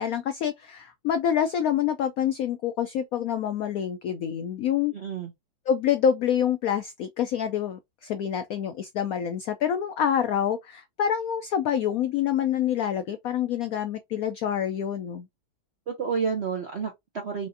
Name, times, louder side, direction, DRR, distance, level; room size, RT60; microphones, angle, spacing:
voice 1, 0.0-4.9 5.7-15.3, left 9 dB, 90° left, 0.7 m, -27 dB
voice 2, 4.9-5.3 15.9-17.5, right 6 dB, 60° right, 0.7 m, -30 dB
4.8 x 2.5 x 2.6 m
omnidirectional pair, 2.1 m